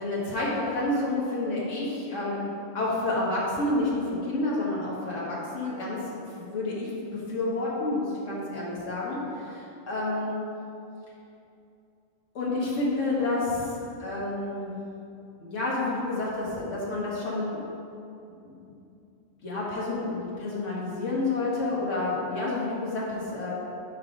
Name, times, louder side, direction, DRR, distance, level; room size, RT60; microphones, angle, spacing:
voice 1, 0.0-2.5 2.7-6.0 6.5-10.3 12.3-14.7 15.4-17.6 18.4-18.6 19.4-23.5, left 2 dB, 85° left, -5 dB, 1.5 m, -29 dB
5.2 x 4.8 x 4.9 m, 2.7 s
omnidirectional pair, 1.3 m